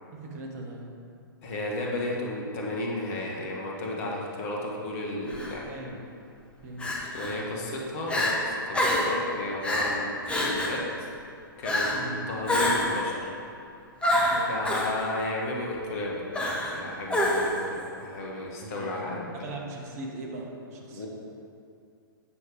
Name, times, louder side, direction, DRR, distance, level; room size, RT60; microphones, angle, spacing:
voice 1, 0.1-0.9 5.6-6.0 6.6-7.0 7.2-7.6 11.9-12.3 14.2-14.5 18.6-21.1, right 2 dB, 45° right, 0 dB, 1.6 m, -40 dB
voice 2, 1.4-5.7 7.1-11.1 11.6-13.3 14.5-19.3 20.9-21.1, left 1 dB, 40° left, -2 dB, 1.7 m, -33 dB
Crying sobbing, 5.3-5.5 6.8-7.3 7.7-7.8 8.1-8.3 8.7-9.1 9.6-9.9 10.3-10.8 11.6-12.0 12.5-13.0 14.0-14.9 16.3-16.8 17.1-17.6, left 1 dB, 10° left, 1.5 m, -26 dB
8.7 x 6.4 x 5.1 m, 2.5 s
figure-of-eight pair, 110°, 12 cm